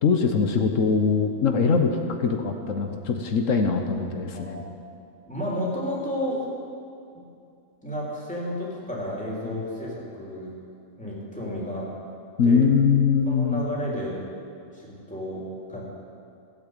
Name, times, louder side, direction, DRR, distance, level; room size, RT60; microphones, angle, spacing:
voice 1, 0.0-4.6 9.5-9.6 12.4-13.7, left 5 dB, 85° left, 5 dB, 1.4 m, -22 dB
voice 2, 4.3-4.7 5.3-6.4 7.1-7.2 7.8-10.5 11.0-11.9 12.4-12.6 13.3-14.3 14.7-15.4 15.7-15.9, equal, 5° left, -6 dB, 3.5 m, -32 dB
15.5 x 8.8 x 8.2 m, 2.5 s
omnidirectional pair, 1.3 m